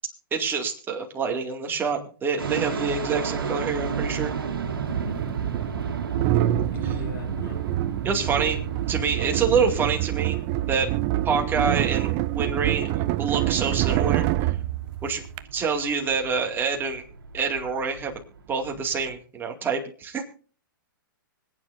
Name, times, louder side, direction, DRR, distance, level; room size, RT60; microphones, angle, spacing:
voice 1, 0.3-4.3 8.0-8.6 8.9-10.4 10.7-10.9 11.2-14.6 15.0-15.3 15.5-17.0 17.3-18.1 18.5-20.2, right 5 dB, 20° right, 2 dB, 2.3 m, -26 dB
sound 1, 2.4-19.1, right 6 dB, 85° right, 2.0 m, -33 dB
sound 2, 3.8-3.9 4.8-15.4, right 15 dB, 35° right, 0.6 m, -26 dB
voice 2, 4.8-5.3 6.2-6.3 6.7-7.6, left 2 dB, 75° left, 2 dB, 3.1 m, -38 dB
25.0 x 9.4 x 2.6 m, 0.41 s
hypercardioid pair, 130°, 12 cm